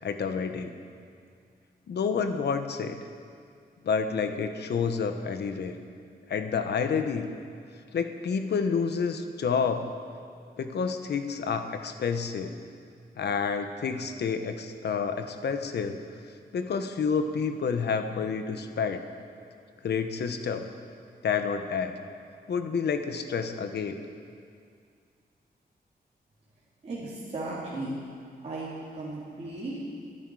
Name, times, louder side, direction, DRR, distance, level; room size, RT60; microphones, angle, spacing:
voice 1, 0.0-0.7 1.9-3.0 3.8-5.8 6.3-7.3 7.9-9.9 10.6-12.5 13.2-16.0 16.5-19.0 19.8-20.7 21.2-22.0 22.5-24.0, left 6 dB, 80° left, 7 dB, 1.0 m, -29 dB
voice 2, 26.8-28.0 28.4-29.8, right 2 dB, 40° right, -9 dB, 3.1 m, -36 dB
22.5 x 10.0 x 4.9 m, 2.3 s
wide cardioid pair, 165°, 17 cm